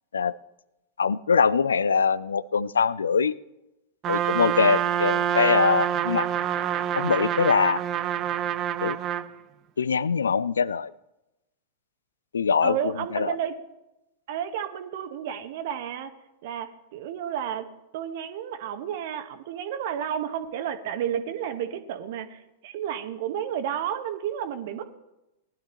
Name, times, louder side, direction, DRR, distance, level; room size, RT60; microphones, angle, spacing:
voice 1, 1.0-3.3 4.1-6.3 6.9-7.8 8.8-9.0 9.8-10.9 12.3-12.8 13.1-13.4, left 6 dB, 70° left, 21 dB, 0.4 m, -23 dB
Trumpet, 4.0-9.3, right 10 dB, 30° right, 0.7 m, -26 dB
voice 2, 12.6-13.6 14.3-16.1 16.4-17.7 17.9-24.9, right 9 dB, 50° right, 9 dB, 1.1 m, -32 dB
19.0 x 12.0 x 3.0 m, 0.94 s
figure-of-eight pair, 95°, 0 cm